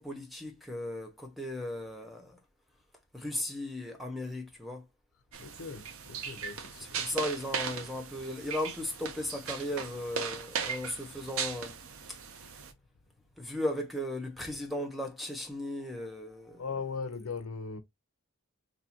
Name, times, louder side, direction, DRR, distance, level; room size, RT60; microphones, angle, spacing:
voice 1, 0.0-2.4 3.1-4.8 6.8-11.7 13.4-16.6, left 1 dB, ahead, 0.8 m, -36 dB
sound 1, 5.3-12.7, right 6 dB, 70° right, 0.7 m, -38 dB
voice 2, 5.4-7.0 16.6-17.8, left 5 dB, 80° left, 0.7 m, -39 dB
4.1 x 2.7 x 2.8 m
head